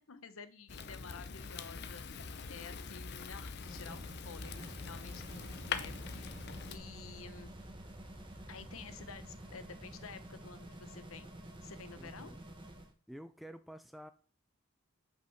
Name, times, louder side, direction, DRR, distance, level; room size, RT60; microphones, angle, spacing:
voice 1, 0.0-7.5 8.5-11.3 11.6-12.4, left 5 dB, 80° left, 11 dB, 0.9 m, -51 dB
Fire, 0.7-6.8, left 5 dB, 50° left, 0.6 m, -43 dB
sound 1, 3.6-12.9, right 1 dB, 25° right, 1.0 m, -49 dB
voice 2, 12.0-12.4 13.1-14.1, equal, ahead, 11 dB, 0.4 m, -50 dB
5.8 x 5.6 x 5.7 m, 0.40 s
head